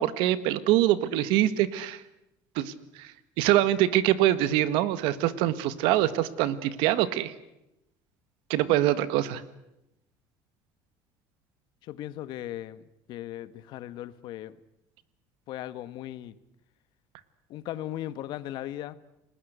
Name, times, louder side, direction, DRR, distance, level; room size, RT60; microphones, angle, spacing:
voice 1, 0.0-2.0 2.5-3.1 3.4-7.3 8.5-9.4, right 13 dB, 75° right, 1.7 m, -24 dB
voice 2, 11.8-14.6 15.5-16.3 17.5-19.0, left 13 dB, 60° left, 1.2 m, -38 dB
30.0 x 20.0 x 8.1 m
cardioid pair, 145°, 9 cm